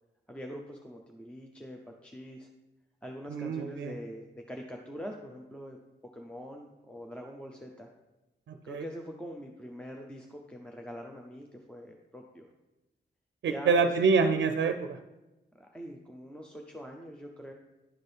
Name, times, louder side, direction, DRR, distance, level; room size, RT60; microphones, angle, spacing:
voice 1, 0.3-2.5 3.0-5.8 6.1-7.9 8.6-12.5 13.5-13.9 15.5-17.5, equal, 5° left, 1 dB, 0.5 m, -44 dB
voice 2, 3.3-3.9 8.5-8.8 13.4-15.0, right 5 dB, 85° right, 7 dB, 0.4 m, -26 dB
11.0 x 4.3 x 3.3 m, 1.0 s
wide cardioid pair, 160°, 19 cm